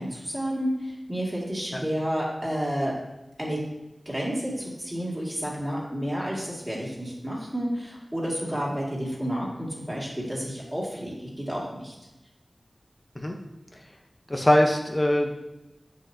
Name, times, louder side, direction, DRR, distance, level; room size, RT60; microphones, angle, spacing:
voice 1, 0.0-2.9 3.4-3.6 4.1-11.9, equal, 15° right, -4 dB, 2.2 m, -30 dB
voice 2, 14.3-15.3, left 1 dB, 30° left, 2 dB, 0.9 m, -22 dB
7.6 x 7.0 x 2.8 m, 0.98 s
wide cardioid pair, 60°, 0 cm